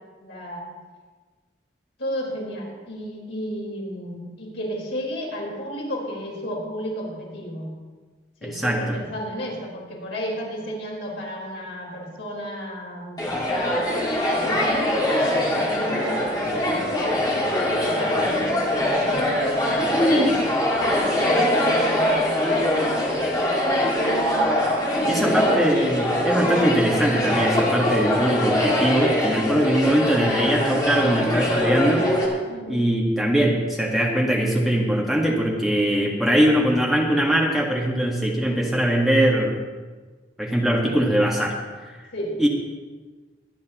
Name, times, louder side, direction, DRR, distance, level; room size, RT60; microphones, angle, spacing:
voice 1, 0.2-0.8 2.0-7.7 8.4-13.8 14.3-24.4 24.9-25.5 32.5-32.8 42.1-42.3, equal, 80° left, -4 dB, 4.6 m, -32 dB
voice 2, 8.4-9.0 25.1-32.1 32.7-39.6 40.4-41.6 42.4-42.5, right 1 dB, ahead, -3 dB, 1.7 m, -21 dB
sound 1, 13.2-32.3, left 1 dB, 20° left, 2.3 m, -22 dB
23.5 x 9.4 x 3.1 m, 1.4 s
head